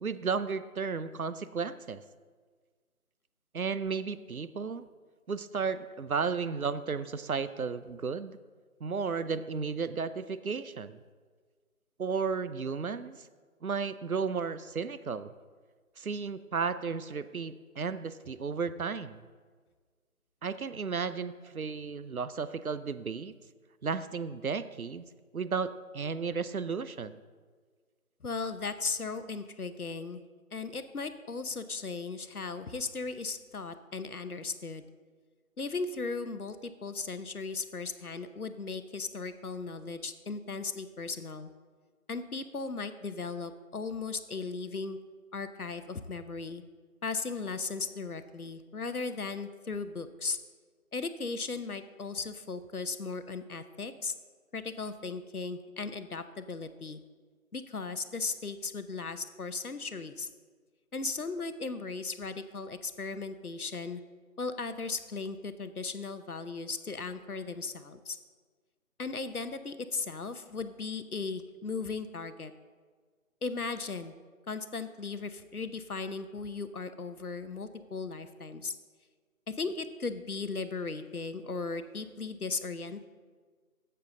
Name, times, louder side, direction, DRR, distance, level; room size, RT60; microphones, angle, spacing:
voice 1, 0.0-2.0 3.5-4.8 5.3-8.4 8.8-11.0 12.0-13.2 13.6-15.3 16.0-19.2 20.4-23.3 23.8-25.1 25.3-27.2, right 5 dB, 75° right, 14 dB, 0.7 m, -33 dB
voice 2, 28.2-30.2 30.5-34.8 35.6-41.5 42.1-45.0 45.3-46.6 47.0-50.4 50.9-54.1 54.5-57.0 57.5-60.3 60.9-64.0 64.4-68.2 69.0-72.5 73.4-74.1 74.5-78.8 79.5-83.1, left 4 dB, 85° left, 11 dB, 0.9 m, -37 dB
15.5 x 6.8 x 3.8 m, 1.5 s
figure-of-eight pair, 160°, 43 cm